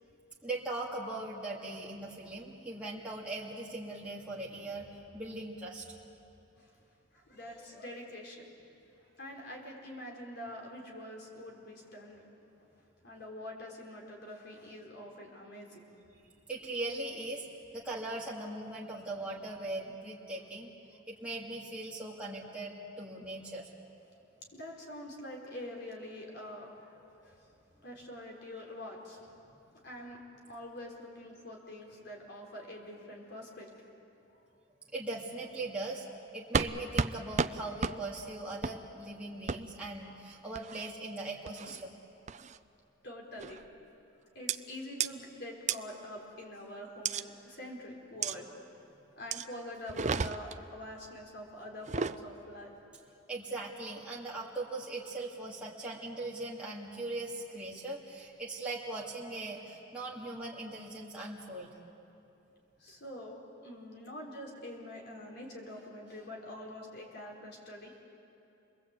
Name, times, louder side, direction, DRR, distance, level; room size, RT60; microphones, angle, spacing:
voice 1, 0.4-5.9 16.5-17.5 17.7-23.7 34.9-36.1 36.3-41.9 53.3-61.7, right 2 dB, 5° right, -6 dB, 2.4 m, -40 dB
voice 2, 7.1-8.5 9.0-12.3 13.0-15.9 24.5-27.5 27.8-29.3 29.8-33.9 43.0-43.6 44.3-48.5 49.2-52.8 62.8-67.9, left 1 dB, 55° left, -1 dB, 4.7 m, -45 dB
sound 1, 36.5-36.7 37.0-37.1 37.4-37.5 37.8-38.0 38.6-38.8 39.5-39.6 40.5-40.9 41.5-41.8 42.3-42.6 43.4-43.7 44.5-44.6 45.0-45.1 45.7-45.8 47.0-47.2 48.2-48.4 49.3-49.5 49.9-50.6 51.8-52.2, right 5 dB, 35° right, 0.5 m, -32 dB
29.5 x 21.5 x 8.4 m, 2.8 s
head